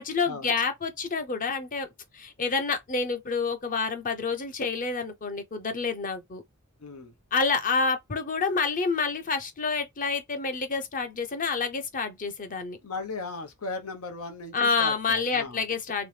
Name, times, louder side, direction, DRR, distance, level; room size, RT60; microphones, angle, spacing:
voice 1, 0.0-1.9 2.1-6.4 7.3-12.8 14.5-16.1, left 4 dB, 40° left, 0.7 m, -28 dB
voice 2, 6.8-7.1 12.8-15.6, left 3 dB, 85° left, 0.8 m, -37 dB
3.0 x 3.0 x 3.2 m
head